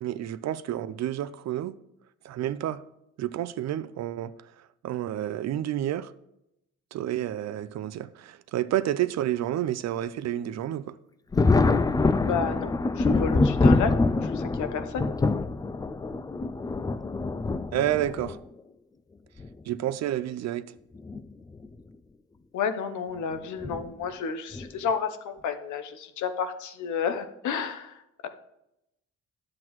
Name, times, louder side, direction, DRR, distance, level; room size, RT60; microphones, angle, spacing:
voice 1, 0.0-1.7 2.2-2.8 3.2-4.3 4.8-6.1 6.9-11.0 17.7-18.4 19.7-20.7, right 12 dB, 60° right, 0.5 m, -29 dB
Thunder, 11.3-18.4 19.4-19.5 21.0-21.2 21.6-21.7 23.6-23.8 24.5-24.9, left 3 dB, 15° left, 0.3 m, -25 dB
voice 2, 12.2-15.1 22.5-28.3, left 6 dB, 75° left, 0.9 m, -31 dB
10.5 x 7.6 x 3.1 m
cardioid pair, 90°, 30 cm